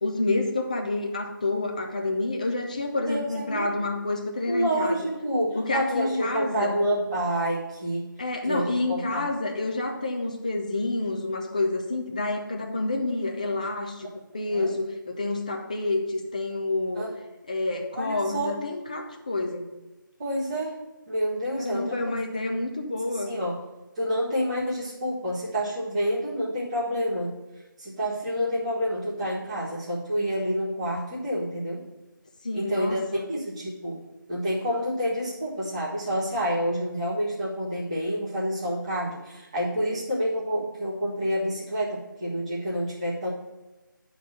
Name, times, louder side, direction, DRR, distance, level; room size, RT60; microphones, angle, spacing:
voice 1, 0.0-5.0 5.5-6.8 8.2-14.1 14.3-17.1 17.5-19.7 21.6-23.3 32.4-33.3, left 2 dB, 20° left, 2 dB, 0.7 m, -28 dB
voice 2, 3.1-3.7 4.5-8.1 8.4-9.2 14.5-14.7 16.9-17.1 17.9-18.5 20.2-22.1 23.1-23.6 23.9-27.3 27.8-31.8 32.5-34.0 34.3-43.3, equal, 15° right, -9 dB, 1.6 m, -28 dB
10.0 x 4.0 x 6.5 m, 1.1 s
figure-of-eight pair, 175°, 11 cm